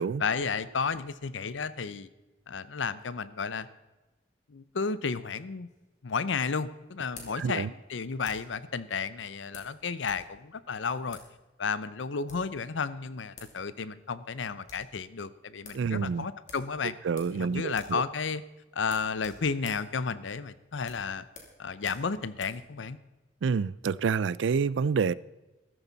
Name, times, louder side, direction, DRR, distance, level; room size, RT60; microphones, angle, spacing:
voice 1, 0.2-2.1 2.5-3.7 4.5-5.7 6.0-11.2 11.6-17.0 17.3-18.4 18.7-21.3 21.6-23.0, left 5 dB, 85° left, 0.7 m, -32 dB
sound 1, 5.7-8.6 9.5-10.3 10.5-10.6 11.1-11.3 12.1-12.6 13.1-13.2 13.4-13.6 13.9-14.0 14.3-14.9 15.3-15.4 15.6-15.9 16.4-17.4 17.7-18.0 18.3-18.4 18.8-22.6, left 4 dB, 40° left, 2.8 m, -51 dB
voice 2, 7.4-7.7 15.7-16.3 17.0-18.0 23.4-25.1, right 5 dB, 80° right, 0.4 m, -28 dB
14.0 x 13.0 x 4.0 m
head